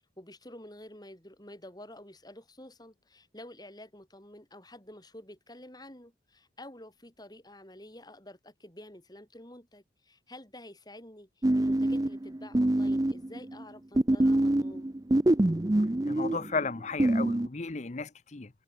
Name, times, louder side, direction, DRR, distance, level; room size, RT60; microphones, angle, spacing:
voice 1, 0.2-14.9, left 1 dB, 20° left, 6.5 m, -49 dB
robots have feelings, 11.4-13.6 14.0-17.5, right 1 dB, 20° right, 0.5 m, -25 dB
voice 2, 16.1-18.5, left 4 dB, 40° left, 0.7 m, -34 dB
head